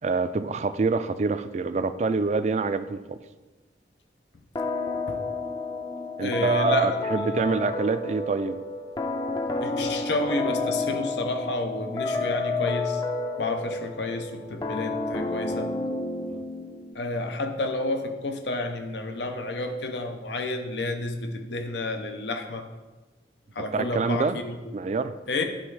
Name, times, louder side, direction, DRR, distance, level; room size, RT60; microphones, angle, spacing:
voice 1, 0.0-3.2 6.2-8.6 16.3-16.4 23.7-24.4 24.7-25.2, right 4 dB, 40° right, 11 dB, 0.3 m, -26 dB
sound 1, 4.6-16.9, left 3 dB, 20° left, 0.5 m, -30 dB
voice 2, 6.2-7.3 9.6-13.0 13.4-15.7 16.9-22.6 23.6-24.6 25.3-25.4, left 2 dB, 80° left, 5 dB, 0.7 m, -30 dB
10.0 x 3.5 x 4.7 m, 1.2 s
head